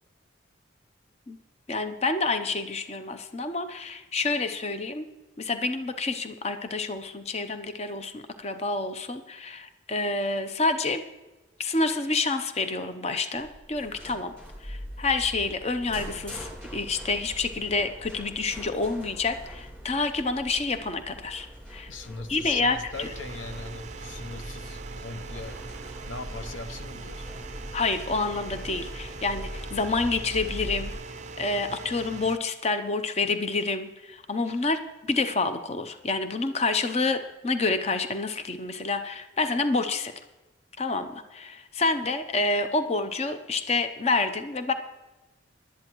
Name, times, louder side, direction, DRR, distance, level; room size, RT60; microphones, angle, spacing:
voice 1, 1.7-5.1 5.4-11.1 11.6-21.9 22.3-23.1 27.7-40.1 40.8-44.7, left 3 dB, 30° left, 0.6 m, -28 dB
sound 1, 13.4-30.9, equal, 5° left, 3.6 m, -42 dB
voice 2, 21.9-25.6 26.1-27.6, left 3 dB, 75° left, 0.7 m, -40 dB
sound 2, 22.9-32.4, right 4 dB, 35° right, 0.4 m, -42 dB
18.5 x 11.5 x 3.0 m
head